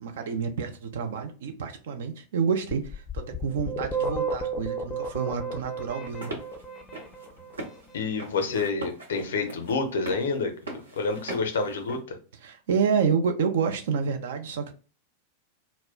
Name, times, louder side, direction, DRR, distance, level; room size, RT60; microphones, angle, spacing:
voice 1, 0.0-6.3 12.4-14.7, right 6 dB, 60° right, 5 dB, 0.4 m, -28 dB
sound 1, 2.7-7.6, right 3 dB, 10° left, 0.4 m, -32 dB
sound 2, 6.0-12.0, right 2 dB, 75° right, 0.8 m, -41 dB
voice 2, 7.9-12.2, left 4 dB, 60° left, 6 dB, 0.5 m, -28 dB
2.1 x 2.0 x 3.6 m, 0.36 s
figure-of-eight pair, 90°, 0 cm